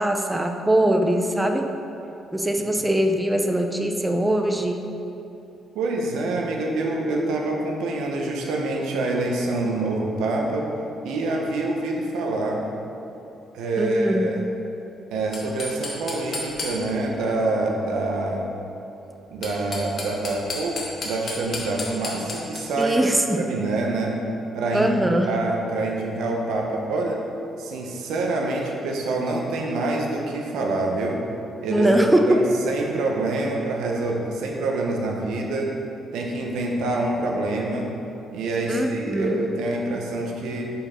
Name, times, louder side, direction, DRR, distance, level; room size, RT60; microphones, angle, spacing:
voice 1, 0.0-1.7 2.3-4.8 13.8-14.3 22.8-23.4 24.7-25.3 31.7-32.5 38.7-39.4, right 1 dB, 10° right, 4 dB, 0.4 m, -21 dB
voice 2, 5.7-10.7 11.0-12.6 13.5-14.4 15.1-18.5 19.3-24.2 24.5-24.9 25.2-27.2 27.6-31.2 31.6-31.9 32.3-35.7 36.1-37.9 38.3-40.7, right 2 dB, 90° right, 0 dB, 0.7 m, -26 dB
sound 1, 15.3-17.1 19.2-22.9, left 2 dB, 50° left, 1.2 m, -33 dB
5.3 x 4.3 x 4.3 m, 2.9 s
cardioid pair, 90°, 0 cm